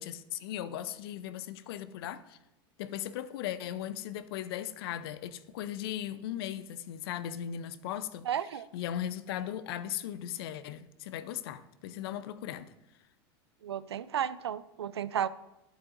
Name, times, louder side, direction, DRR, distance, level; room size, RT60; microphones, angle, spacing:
voice 1, 0.0-2.4 2.8-8.3 8.5-12.7, left 11 dB, 70° left, 0.6 m, -38 dB
voice 2, 8.3-8.7 13.6-15.3, right 9 dB, 90° right, 0.4 m, -33 dB
12.0 x 8.2 x 2.5 m
hypercardioid pair, 95°, 13 cm